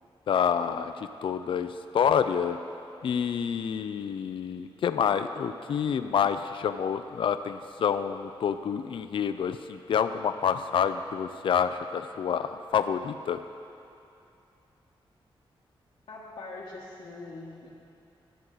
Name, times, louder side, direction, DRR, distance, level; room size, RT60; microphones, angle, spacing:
voice 1, 0.3-2.6 3.0-13.4, left 7 dB, 65° left, 10 dB, 0.3 m, -28 dB
voice 2, 16.1-17.7, left 3 dB, 80° left, -8 dB, 1.4 m, -42 dB
13.5 x 7.8 x 3.9 m, 2.7 s
wide cardioid pair, 140°, 10 cm